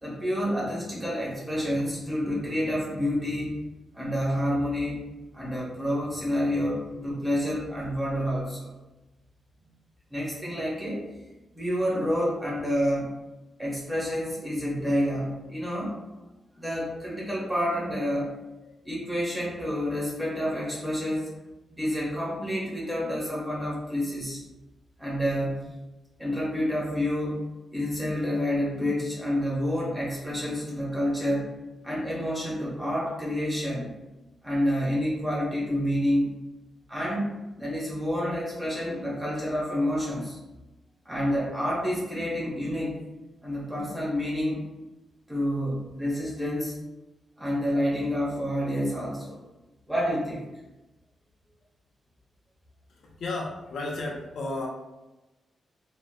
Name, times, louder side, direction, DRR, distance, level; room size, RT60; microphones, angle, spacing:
voice 1, 0.0-3.6 3.9-5.1 5.3-8.7 10.1-11.0 11.5-13.1 13.6-16.0 16.5-18.3 18.8-21.3 21.7-24.4 25.0-25.7 26.2-31.5 31.8-33.9 34.4-36.3 36.9-40.4 41.0-43.0 43.4-44.7 45.3-46.7 47.4-49.4 49.9-50.5, equal, 10° right, -5 dB, 0.9 m, -28 dB
voice 2, 52.9-54.7, left 2 dB, 75° left, -1 dB, 0.5 m, -33 dB
3.8 x 2.1 x 2.2 m, 1.0 s
wide cardioid pair, 140°, 0 cm